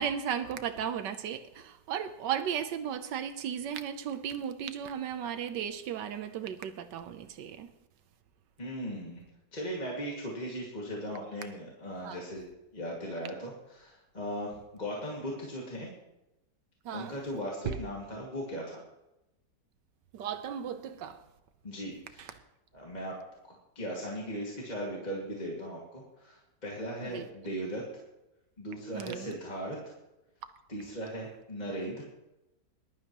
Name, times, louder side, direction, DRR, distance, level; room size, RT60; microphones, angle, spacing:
voice 1, 0.0-7.7 12.0-12.2 16.8-17.2 17.7-17.8 20.1-21.2 22.2-22.3 27.1-27.2 28.9-29.4, right 8 dB, 80° right, 1.4 m, -35 dB
voice 2, 8.6-9.2 9.5-12.5 12.7-15.9 16.9-18.8 21.6-22.4 22.7-23.2 23.5-27.8 28.6-29.8 30.7-32.0, equal, 25° left, 2.2 m, -38 dB
20.5 x 12.0 x 3.0 m
omnidirectional pair, 1.9 m